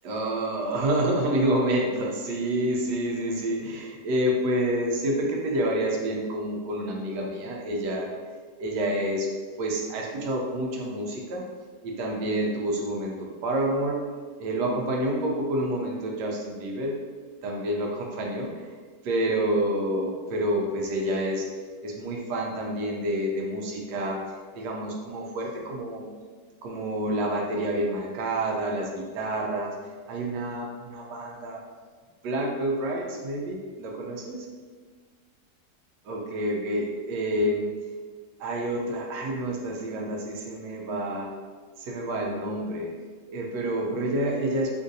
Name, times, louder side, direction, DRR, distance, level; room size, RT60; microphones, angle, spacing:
voice 1, 0.0-8.1 8.6-9.3 9.6-11.5 11.8-14.1 14.4-17.0 17.4-18.7 19.0-21.5 21.8-26.1 26.6-29.7 30.1-31.6 32.2-34.5 36.0-37.7 38.4-41.3 41.8-42.9 43.3-44.7, right 1 dB, 85° right, 0 dB, 1.2 m, -28 dB
3.7 x 2.6 x 2.6 m, 1.5 s
omnidirectional pair, 1.8 m